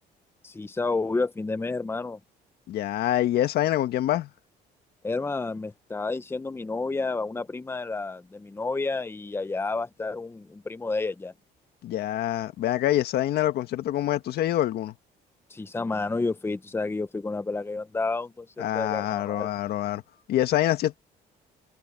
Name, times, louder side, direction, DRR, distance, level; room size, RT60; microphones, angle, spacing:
voice 1, 0.4-2.2 5.0-11.3 15.5-19.5, left 3 dB, 15° left, 1.0 m, -30 dB
voice 2, 2.7-4.3 11.8-14.9 18.6-20.0 20.3-21.0, left 13 dB, 70° left, 1.7 m, -25 dB
cardioid pair, 110°, 17 cm